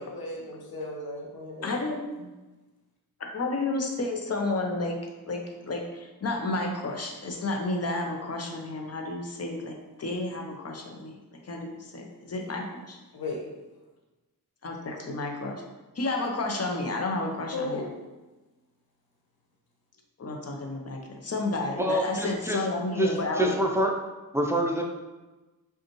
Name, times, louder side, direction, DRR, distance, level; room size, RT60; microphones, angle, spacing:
voice 1, 0.0-1.8 2.2-2.3 13.1-13.4 17.5-17.9, left 2 dB, 75° left, -1 dB, 0.8 m, -35 dB
voice 2, 1.6-2.0 3.2-5.0 5.3-5.4 5.7-13.0 14.6-15.6 16.0-17.8 20.2-23.5, left 2 dB, 40° left, 1 dB, 0.7 m, -31 dB
voice 3, 21.8-22.6 23.0-23.9 24.3-24.8, right 1 dB, 5° right, 0 dB, 0.5 m, -26 dB
5.1 x 2.4 x 3.0 m, 1.1 s
wide cardioid pair, 75°, 36 cm